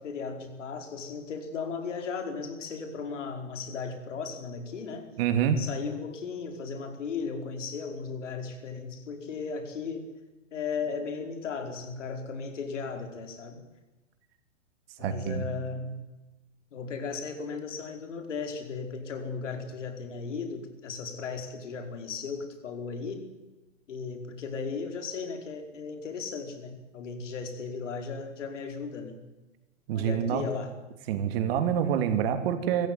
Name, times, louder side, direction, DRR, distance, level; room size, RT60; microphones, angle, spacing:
voice 1, 0.0-5.1 5.6-10.1 10.5-13.6 15.0-16.0 16.7-23.3 23.9-29.2 29.9-30.7, left 5 dB, 70° left, 5 dB, 5.0 m, -36 dB
voice 2, 5.2-5.6 15.0-15.4 29.9-30.4 31.1-32.9, right 8 dB, 50° right, 8 dB, 3.0 m, -26 dB
25.5 x 14.5 x 9.4 m, 1.1 s
hypercardioid pair, 120°, 38 cm